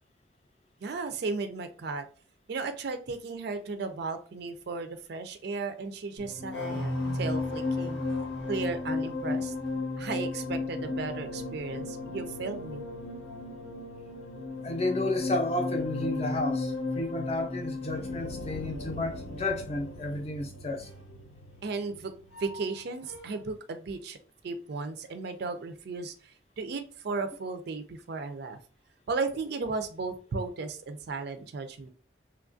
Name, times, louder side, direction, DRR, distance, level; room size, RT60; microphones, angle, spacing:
voice 1, 0.8-2.1 2.5-8.0 8.5-9.5 10.0-12.9 21.6-22.1 22.4-24.2 24.4-28.6 29.1-31.9, right 4 dB, 55° right, 0.4 m, -35 dB
sound 1, 6.2-22.8 23.1-23.4, left 3 dB, 75° left, 0.9 m, -35 dB
voice 2, 14.6-20.9, left 2 dB, 30° left, 0.5 m, -32 dB
3.1 x 2.3 x 2.5 m
head